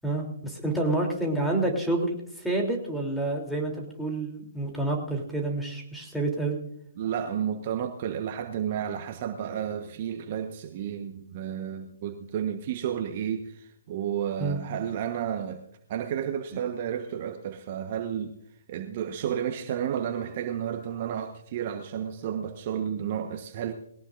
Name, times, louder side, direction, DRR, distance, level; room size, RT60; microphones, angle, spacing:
voice 1, 0.0-6.6 14.4-14.6, right 2 dB, ahead, 3.3 m, -28 dB
voice 2, 7.0-15.6 15.9-18.4 18.7-23.7, right 9 dB, 40° right, 1.2 m, -32 dB
20.5 x 18.0 x 2.6 m
figure-of-eight pair, 135°, 0 cm